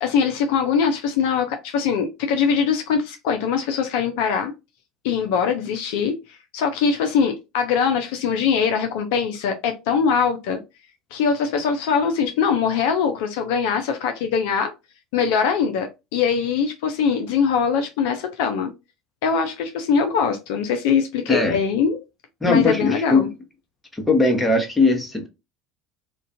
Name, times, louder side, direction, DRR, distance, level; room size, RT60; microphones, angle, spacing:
voice 1, 0.0-4.5 5.0-10.6 11.1-14.7 15.1-18.7 19.2-22.0 22.5-23.3, left 6 dB, 60° left, 0.3 m, -22 dB
voice 2, 22.4-23.3 23.9-25.3, left 3 dB, 10° left, 0.8 m, -19 dB
2.4 x 2.2 x 2.6 m
figure-of-eight pair, 70°, 0 cm